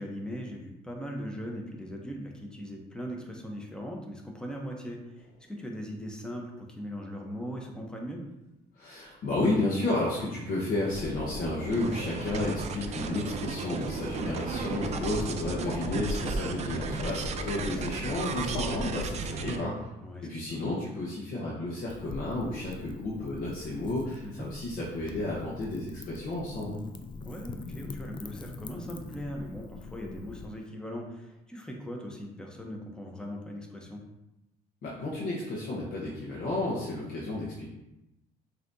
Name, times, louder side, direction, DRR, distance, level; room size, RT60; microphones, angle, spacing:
voice 1, 0.0-8.2 14.0-14.4 17.6-17.8 18.1-18.3 20.0-20.6 24.2-24.5 27.1-34.0, equal, 5° left, 0 dB, 0.8 m, -39 dB
sound 1, 5.2-5.5 10.6-19.5, left 1 dB, 75° left, 1.5 m, -39 dB
voice 2, 8.7-19.7 20.2-26.8 34.8-37.7, left 2 dB, 60° left, -6 dB, 1.0 m, -32 dB
sound 2, 11.7-19.6, right 5 dB, 40° right, 0.4 m, -35 dB
Wind / Fire, 21.9-30.5, left 3 dB, 30° left, 0.4 m, -44 dB
5.7 x 2.8 x 2.7 m, 0.92 s
cardioid pair, 110°, 17 cm